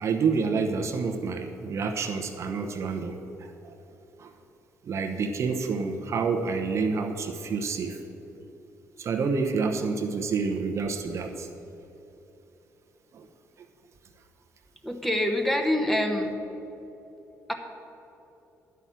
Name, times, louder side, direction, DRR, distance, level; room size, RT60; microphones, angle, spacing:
voice 1, 0.0-3.7 4.2-4.3 4.8-8.0 9.0-11.5 13.1-13.2, right 5 dB, 55° right, 4 dB, 0.9 m, -28 dB
voice 2, 14.8-16.3 17.5-17.6, left 1 dB, 5° left, 4 dB, 1.2 m, -25 dB
10.5 x 5.7 x 7.4 m, 3.0 s
cardioid pair, 75°, 6 cm